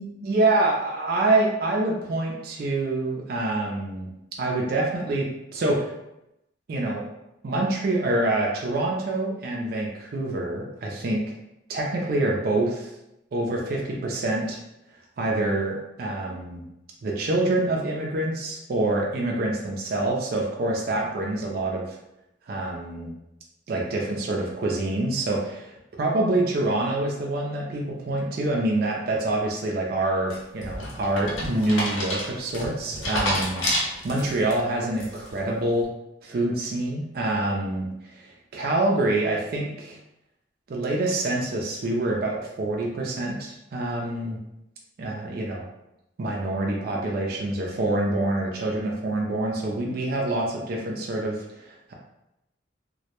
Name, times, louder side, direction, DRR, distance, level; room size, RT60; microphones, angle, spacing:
voice 1, 0.2-4.1 4.4-5.9 6.7-7.1 7.4-11.2 11.7-12.9 13.3-14.6 15.2-16.6 17.0-22.0 22.5-23.1 23.7-25.7 26.0-35.9 36.2-40.0 40.7-44.4 45.0-45.6 46.2-51.9, right 2 dB, 50° right, -1 dB, 0.3 m, -26 dB
sound 1, 30.3-34.5 35.0-35.4, left 1 dB, 90° left, 0.7 m, -29 dB
2.2 x 2.0 x 2.9 m, 0.88 s
head